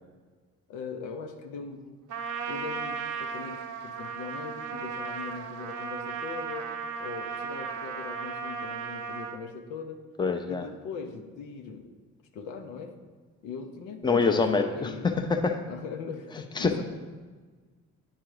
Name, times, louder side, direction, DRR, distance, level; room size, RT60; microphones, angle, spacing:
voice 1, 0.7-2.0 2.5-6.7 7.0-10.0 10.4-11.9 12.3-13.0 13.4-15.1 15.7-16.8, left 5 dB, 90° left, 5 dB, 0.7 m, -40 dB
Trumpet, 2.1-9.4, right 6 dB, 80° right, 0.7 m, -35 dB
voice 2, 10.2-10.6 14.0-15.6 16.6-16.8, left 4 dB, 15° left, 6 dB, 0.6 m, -25 dB
9.3 x 3.7 x 4.8 m, 1.4 s
cardioid pair, 90°, 30 cm